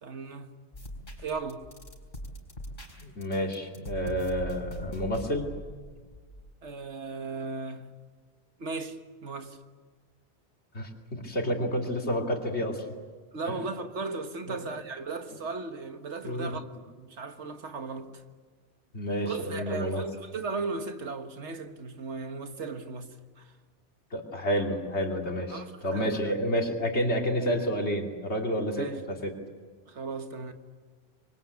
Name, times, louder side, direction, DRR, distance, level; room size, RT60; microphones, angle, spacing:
voice 1, 0.0-0.5 1.2-1.7 6.6-8.0 8.6-9.6 13.3-16.7 17.0-18.2 19.2-23.5 25.5-26.3 28.8-28.9 29.9-30.5, right 4 dB, 75° right, 1.8 m, -36 dB
sound 1, 0.7-6.5, equal, 45° left, 4.2 m, -42 dB
voice 2, 3.0-5.5 10.7-12.8 13.5-13.6 14.5-14.6 15.3-15.4 16.2-16.5 18.9-20.0 24.1-29.3, equal, 70° left, 3.2 m, -30 dB
26.0 x 23.5 x 8.4 m
omnidirectional pair, 1.2 m